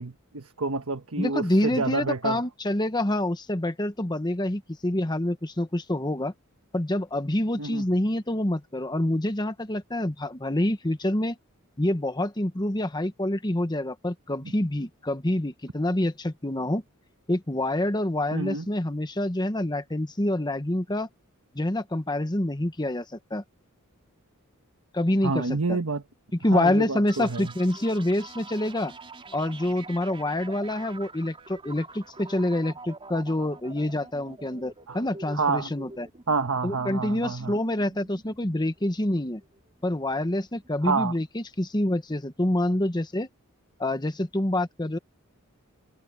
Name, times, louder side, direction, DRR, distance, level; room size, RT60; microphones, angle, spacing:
voice 1, 0.0-2.4 7.6-7.9 18.3-18.7 25.2-26.0 26.5-27.5 34.9-35.0 35.3-35.7 36.3-37.6 40.8-41.2, right 4 dB, 75° right, 1.3 m, -28 dB
voice 2, 1.2-6.3 6.7-11.4 11.8-16.8 17.3-21.1 21.5-23.0 23.3-23.4 24.9-25.8 26.4-28.9 29.3-36.1 36.6-39.4 39.8-43.3 43.8-45.0, left 1 dB, 20° left, 1.1 m, -27 dB
sound 1, 27.1-40.7, right 3 dB, 25° right, 4.7 m, -46 dB
head